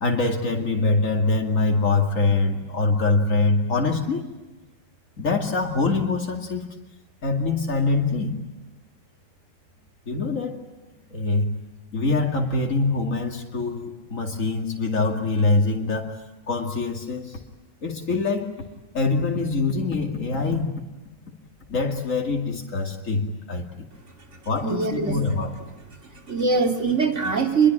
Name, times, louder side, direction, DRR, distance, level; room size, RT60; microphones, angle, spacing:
voice 1, 0.0-4.2 5.2-6.6 7.2-8.4 10.1-10.6 11.1-11.5 11.9-16.2 16.5-17.4 17.8-18.6 18.9-20.7 21.7-23.9 24.5-25.7, left 3 dB, 90° left, 2 dB, 2.9 m, -24 dB
voice 2, 24.6-25.2 26.0-27.7, right 5 dB, 65° right, 4 dB, 3.2 m, -22 dB
28.0 x 22.5 x 8.9 m, 1.1 s
omnidirectional pair, 1.3 m